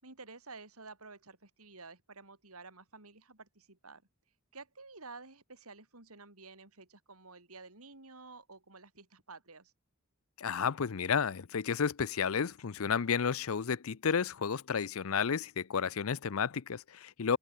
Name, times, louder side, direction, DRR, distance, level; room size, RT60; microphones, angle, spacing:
voice 1, 0.0-4.0 4.5-9.7, right 3 dB, 85° right, 5.5 m, -51 dB
voice 2, 10.4-17.4, left 6 dB, 75° left, 0.6 m, -32 dB
head